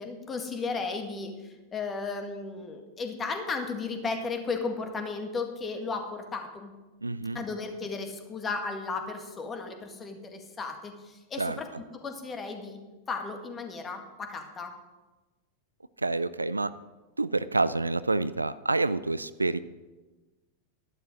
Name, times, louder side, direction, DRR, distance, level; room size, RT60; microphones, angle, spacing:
voice 1, 0.0-6.7 7.3-11.7 11.9-12.8 13.1-14.7, left 4 dB, 20° left, 5 dB, 1.9 m, -35 dB
voice 2, 7.0-7.4 11.4-11.6 16.0-16.7 17.2-19.6, right 3 dB, 80° right, 16 dB, 0.4 m, -28 dB
12.5 x 11.0 x 5.0 m, 1.2 s
figure-of-eight pair, 90°, 0 cm